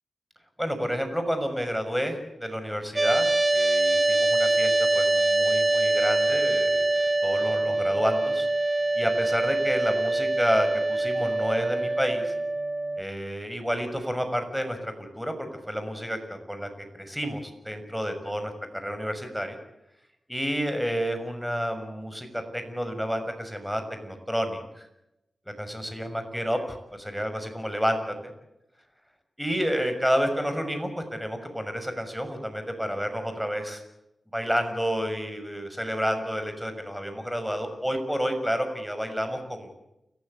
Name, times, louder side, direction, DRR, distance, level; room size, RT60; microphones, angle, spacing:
voice 1, 0.6-6.8 7.2-8.5 8.9-12.3 13.0-19.6 20.3-24.9 25.6-28.3 29.4-33.8 34.3-39.8, equal, ahead, 7 dB, 6.3 m, -30 dB
sound 1, 3.0-13.0, right 2 dB, 30° right, 1.0 m, -24 dB
30.0 x 15.0 x 8.2 m, 0.87 s
cardioid pair, 55°, 0 cm